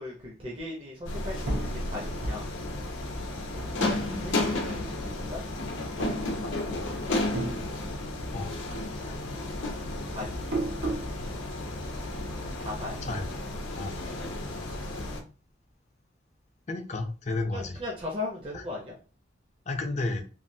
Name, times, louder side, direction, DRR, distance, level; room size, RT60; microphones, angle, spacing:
voice 1, 0.0-2.5 3.8-5.4 6.7-7.2 10.1-10.4 12.4-13.0 14.7-15.0 17.5-19.0, left 2 dB, 30° right, -3 dB, 0.6 m, -38 dB
sound 1, 1.0-15.2, left 2 dB, 75° left, 0.6 m, -33 dB
sound 2, 1.4-4.3 4.6-5.5 5.9-6.8 7.1-8.4 8.7-11.1, right 2 dB, 75° right, 0.9 m, -35 dB
voice 2, 16.7-17.8 18.5-18.6 19.7-20.2, left 2 dB, 35° left, 5 dB, 0.5 m, -31 dB
3.2 x 2.4 x 2.6 m, 0.36 s
head